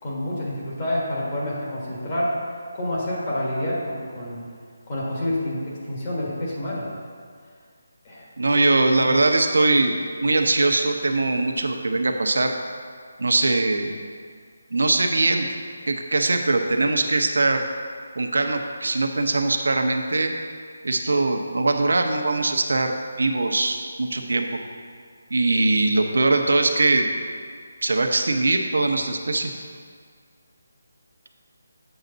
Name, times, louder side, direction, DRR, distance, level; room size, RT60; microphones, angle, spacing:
voice 1, 0.0-2.4 2.7-4.4 4.9-6.9 8.0-8.3 8.9-9.1, left 1 dB, 30° left, -5 dB, 1.6 m, -28 dB
voice 2, 8.4-9.9 10.2-12.5 13.2-13.9 14.7-15.5 15.9-17.6 18.2-20.3 20.8-22.9 23.2-24.6 25.3-27.0 27.8-29.5, right 2 dB, 80° right, 4 dB, 0.8 m, -21 dB
8.0 x 6.5 x 4.0 m, 2.1 s
hypercardioid pair, 170°, 0 cm